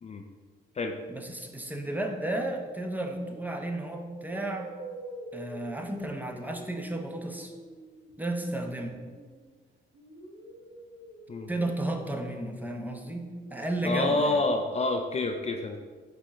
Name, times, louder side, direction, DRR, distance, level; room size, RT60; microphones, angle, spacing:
voice 1, 1.1-4.7 5.3-7.5 8.2-9.0 11.5-14.4, right 1 dB, 10° right, 3 dB, 0.8 m, -33 dB
sound 1, 3.1-3.4 4.2-9.5 9.9-13.9, right 1 dB, 85° right, 1.2 m, -47 dB
voice 2, 13.8-15.8, left 3 dB, 35° left, 4 dB, 0.5 m, -28 dB
5.0 x 3.7 x 5.6 m, 1.5 s
cardioid pair, 90°, 20 cm